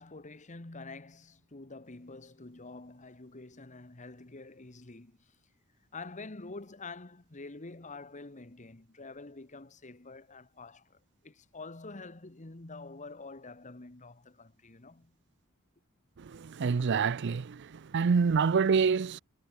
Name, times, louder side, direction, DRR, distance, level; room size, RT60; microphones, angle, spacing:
voice 1, 0.0-5.2 5.9-11.0 11.2-15.1, left 3 dB, 35° left, 1.4 m, -47 dB
voice 2, 16.3-17.6 17.9-19.2, right 5 dB, 55° right, 0.5 m, -26 dB
head